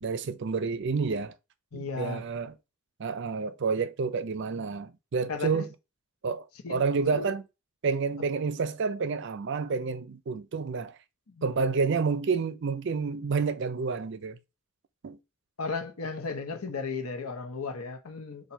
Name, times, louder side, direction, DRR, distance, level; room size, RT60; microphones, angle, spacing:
voice 1, 0.0-1.4 1.7-2.5 3.0-5.7 6.2-7.4 7.8-11.0 11.4-14.4 15.0-15.2, right 5 dB, 55° right, 0.4 m, -29 dB
voice 2, 1.7-2.2 5.3-5.6 6.6-6.8 7.1-7.3 11.3-11.5 15.6-18.5, left 4 dB, 85° left, 1.0 m, -35 dB
4.2 x 2.5 x 4.5 m
head